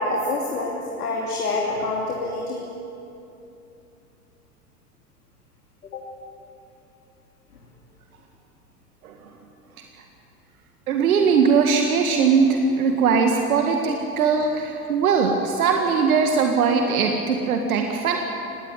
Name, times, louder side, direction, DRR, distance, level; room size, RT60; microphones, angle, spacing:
voice 1, 0.0-2.6 5.9-6.1, left 2 dB, 80° left, -1 dB, 3.1 m, -26 dB
voice 2, 10.9-18.2, right 5 dB, 70° right, 3 dB, 1.9 m, -20 dB
19.5 x 17.5 x 9.1 m, 2.8 s
hypercardioid pair, 100°, 45 cm